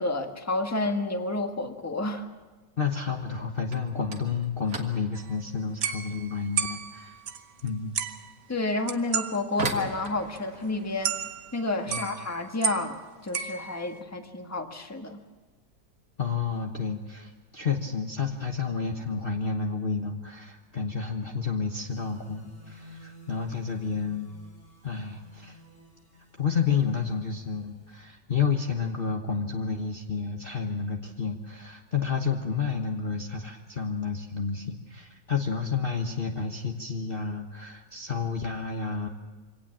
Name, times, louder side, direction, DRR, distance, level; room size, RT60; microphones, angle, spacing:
voice 1, 0.0-2.2 8.5-11.1 11.5-13.0 13.2-15.2, left 2 dB, 10° left, 5 dB, 1.4 m, -30 dB
voice 2, 2.8-7.2 7.6-7.9 9.6-9.7 11.9-12.1 16.2-24.3 24.8-25.6 26.4-39.1, left 5 dB, 35° left, 2 dB, 1.3 m, -30 dB
sound 1, 3.7-14.4 14.6-15.2 15.5-15.8 16.1-16.2 16.9-17.0 17.9-18.2 18.5-19.0, right 2 dB, 55° right, 2.4 m, -42 dB
sound 2, 5.1-5.4 5.8-7.7 7.9-8.3 8.9-9.4 9.6-9.7 10.0-10.1 10.4-10.5 11.0-11.6 11.9-13.0 13.3-14.0, right 8 dB, 75° right, 1.7 m, -32 dB
sound 3, 21.9-28.0, left 1 dB, 80° left, 7.0 m, -53 dB
25.0 x 17.5 x 7.4 m, 1.3 s
omnidirectional pair, 1.8 m